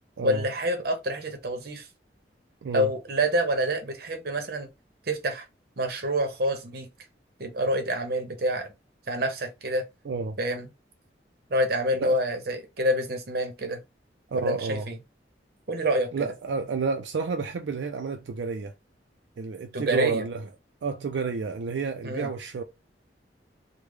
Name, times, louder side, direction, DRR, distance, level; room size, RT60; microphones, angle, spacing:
voice 1, 0.2-1.9 2.7-4.7 5.1-5.4 5.8-6.9 7.4-8.7 9.1-9.8 10.4-10.7 11.5-13.8 14.3-15.0 15.7-16.3 19.7-20.2 22.0-22.3, equal, 60° right, 0.8 m, -27 dB
voice 2, 10.0-10.4 11.9-12.2 14.3-14.9 16.1-18.7 19.4-20.5 20.8-22.6, right 4 dB, 90° right, 0.4 m, -30 dB
3.2 x 2.1 x 3.5 m
head